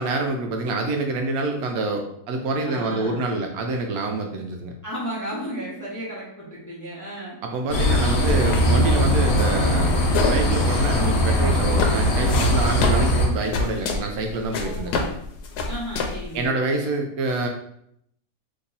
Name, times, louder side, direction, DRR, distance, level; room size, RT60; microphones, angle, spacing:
voice 1, 0.0-4.7 7.4-10.0 10.2-15.0 16.3-17.5, right 2 dB, 75° right, 3 dB, 1.0 m, -26 dB
voice 2, 2.6-3.2 4.8-7.4 14.6-15.0 15.6-16.5, equal, 15° left, -6 dB, 0.8 m, -34 dB
sound 1, 7.7-13.3, equal, 60° left, 1.0 m, -20 dB
sound 2, 8.2-16.4, left 4 dB, 90° left, 1.2 m, -29 dB
2.9 x 2.8 x 3.9 m, 0.71 s
omnidirectional pair, 1.6 m